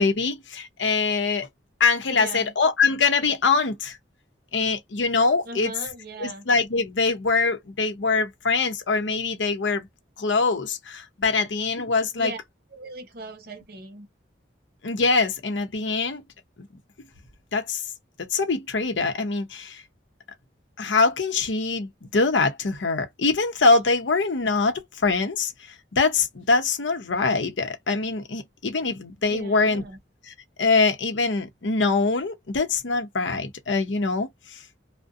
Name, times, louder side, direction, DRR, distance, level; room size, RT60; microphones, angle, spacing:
voice 1, 0.0-1.5 1.8-4.0 4.5-5.7 6.2-9.9 10.2-12.3 14.8-16.2 17.5-17.9 18.2-19.8 20.8-25.5 25.9-29.8 30.3-30.4 30.6-34.6, left 4 dB, 80° left, 0.7 m, -23 dB
voice 2, 2.1-2.5 5.4-6.5 12.1-12.4 12.7-14.1 29.3-30.0, right 2 dB, 55° right, 0.8 m, -38 dB
2.6 x 2.1 x 2.4 m
head